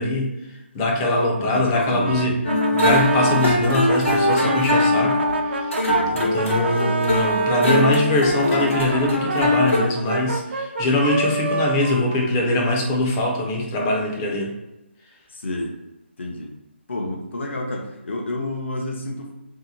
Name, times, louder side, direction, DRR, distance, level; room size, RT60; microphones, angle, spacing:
voice 1, 0.0-2.4 2.7-5.9 6.1-14.5, left 2 dB, 15° left, 0 dB, 0.4 m, -22 dB
voice 2, 1.4-2.4 5.8-6.2 15.3-15.8 16.2-16.5 16.9-19.3, left 1 dB, 70° left, 0 dB, 0.7 m, -29 dB
Brass instrument, 2.0-7.8 8.4-13.1, right 4 dB, 60° right, 0.4 m, -29 dB
sound 1, 2.4-9.8, left 1 dB, 90° left, 1.0 m, -21 dB
2.8 x 2.2 x 3.8 m, 0.97 s
figure-of-eight pair, 160°, 7 cm